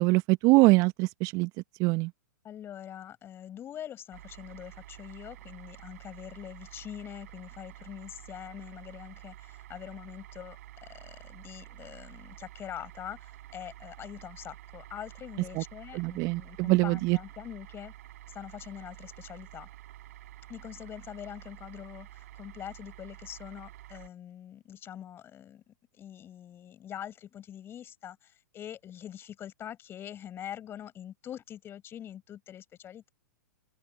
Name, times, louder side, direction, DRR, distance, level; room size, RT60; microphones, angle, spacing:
voice 1, 0.0-1.5 1.8-2.1 15.5-15.6 15.9-17.2, right 24 dB, 40° right, 1.4 m, -23 dB
voice 2, 2.4-17.9 18.3-19.7 20.5-33.1, left 10 dB, 25° left, 5.1 m, -44 dB
sound 1, 4.1-24.1, right 15 dB, 55° right, 7.2 m, -49 dB
open air
figure-of-eight pair, 110°, 10 cm